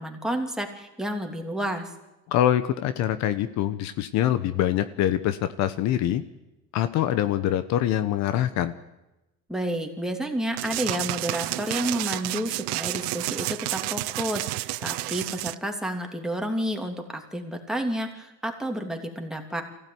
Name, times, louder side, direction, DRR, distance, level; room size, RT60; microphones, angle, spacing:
voice 1, 0.0-1.9 9.5-19.6, right 1 dB, ahead, 2 dB, 3.0 m, -30 dB
voice 2, 2.3-6.2 6.7-8.7, left 11 dB, 60° left, 12 dB, 1.2 m, -24 dB
sound 1, 10.6-15.6, right 22 dB, 85° right, 0.7 m, -30 dB
23.0 x 16.0 x 9.5 m, 0.99 s
supercardioid pair, 120°, 31 cm